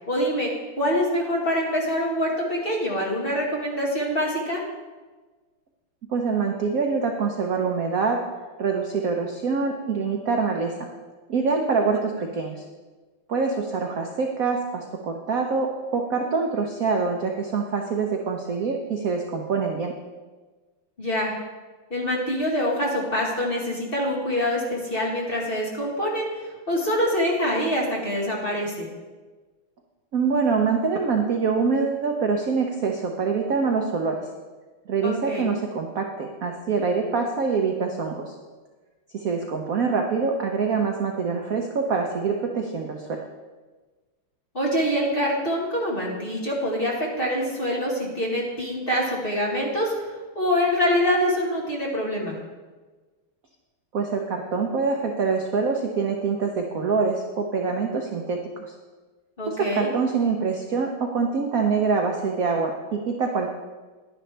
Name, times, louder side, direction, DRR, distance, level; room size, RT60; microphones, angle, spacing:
voice 1, 0.1-0.5 0.7-4.6 11.9-12.3 21.0-21.3 21.9-26.3 26.7-28.9 35.0-35.5 44.5-52.4 59.4-59.9, equal, 25° left, -3 dB, 1.8 m, -25 dB
voice 2, 6.1-8.2 8.6-10.9 11.3-12.6 13.3-19.9 30.1-34.2 34.9-38.3 39.1-43.2 53.9-58.7 59.5-63.5, right 5 dB, 60° right, 2 dB, 0.9 m, -25 dB
11.0 x 10.5 x 3.4 m, 1.3 s
omnidirectional pair, 2.4 m